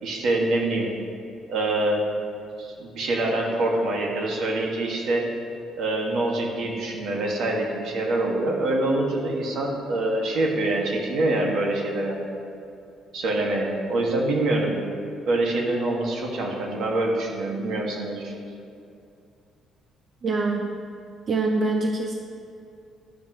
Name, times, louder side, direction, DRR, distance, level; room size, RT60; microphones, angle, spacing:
voice 1, 0.0-0.9 1.5-2.0 2.6-5.3 5.8-12.4 13.1-14.8 15.3-18.3, right 2 dB, 70° right, -1 dB, 2.2 m, -25 dB
voice 2, 20.2-20.8 21.3-22.1, right 3 dB, 40° right, 2 dB, 0.7 m, -24 dB
14.0 x 11.0 x 3.2 m, 2.5 s
cardioid pair, 120°, 0 cm